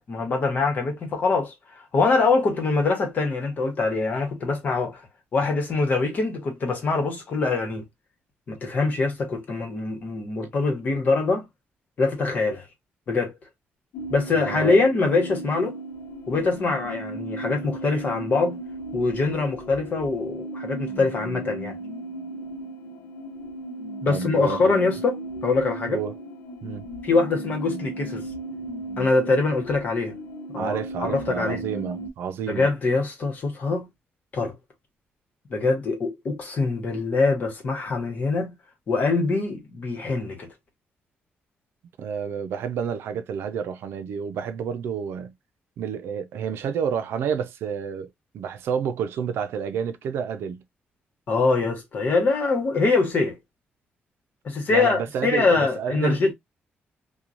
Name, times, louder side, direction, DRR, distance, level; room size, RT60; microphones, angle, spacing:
voice 1, 0.0-5.0 5.3-7.9 8.5-11.5 12.0-12.6 13.1-13.3 14.1-15.8 16.3-18.6 18.9-21.8 24.0-26.0 27.0-28.3 29.0-30.2 30.5-31.6 32.5-33.9 34.3-34.5 35.5-38.5 38.9-40.5 51.3-53.4 54.4-56.3, left 3 dB, 45° left, 1.1 m, -24 dB
sound 1, 13.9-32.1, right 1 dB, 75° left, 0.5 m, -36 dB
voice 2, 14.3-14.8 24.1-24.7 25.9-26.1 26.6-26.9 30.5-32.7 42.0-45.3 45.8-50.6 54.7-56.2, right 7 dB, 90° right, 0.5 m, -29 dB
3.0 x 2.3 x 2.5 m
cardioid pair, 155°, 4 cm